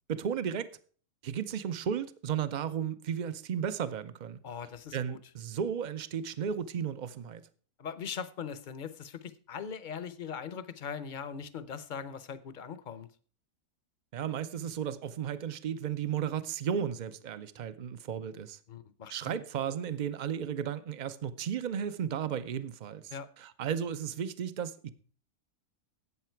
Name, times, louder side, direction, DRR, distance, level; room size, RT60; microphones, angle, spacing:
voice 1, 0.1-0.7 1.2-4.4 4.9-7.4 14.1-18.6 19.1-24.9, right 8 dB, 65° right, 0.4 m, -34 dB
voice 2, 4.4-5.2 7.8-13.1 18.7-19.4 23.1-23.3, left 7 dB, 45° left, 0.6 m, -40 dB
12.5 x 8.4 x 4.5 m
omnidirectional pair, 1.6 m